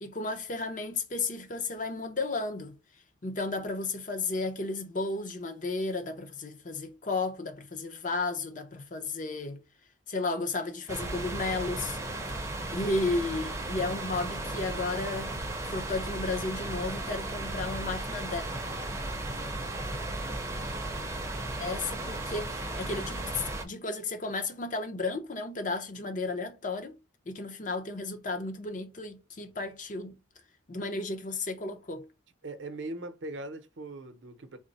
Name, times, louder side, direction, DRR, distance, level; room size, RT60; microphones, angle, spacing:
voice 1, 0.0-2.8 3.2-9.6 10.1-12.0 12.7-15.3 15.6-18.5 21.6-27.0 27.3-30.1 30.7-32.1, left 3 dB, 40° left, 0.6 m, -33 dB
sound 1, 10.9-23.6, right 2 dB, 15° right, 0.6 m, -35 dB
voice 2, 32.4-34.6, right 2 dB, 70° right, 0.6 m, -40 dB
3.6 x 2.0 x 4.0 m
head